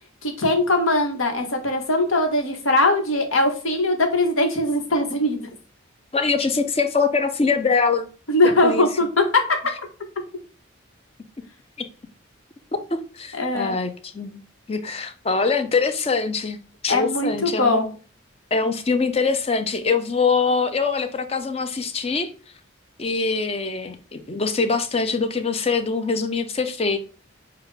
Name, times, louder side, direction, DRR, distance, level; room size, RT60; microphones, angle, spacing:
voice 1, 0.2-5.5 8.3-9.6 13.3-13.8 16.9-17.9, left 2 dB, 85° left, 4 dB, 1.2 m, -21 dB
voice 2, 6.1-8.1 8.4-8.9 12.7-14.4 14.7-16.6 16.8-17.7 18.5-22.3 23.0-27.0, left 4 dB, 30° left, 8 dB, 0.5 m, -23 dB
6.6 x 2.4 x 3.3 m, 0.38 s
head